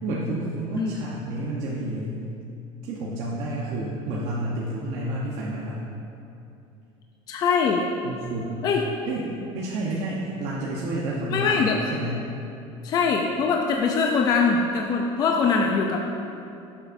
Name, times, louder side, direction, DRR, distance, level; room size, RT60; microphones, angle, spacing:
voice 1, 0.0-2.2 2.8-5.8 8.0-8.7 9.0-9.3 9.5-12.3, right 1 dB, 65° right, -5 dB, 1.0 m, -30 dB
voice 2, 7.3-7.8 8.6-8.8 11.3-11.8 12.8-16.0, left 5 dB, 30° left, 1 dB, 0.5 m, -22 dB
11.5 x 7.3 x 2.6 m, 2.7 s
cardioid pair, 165°, 12 cm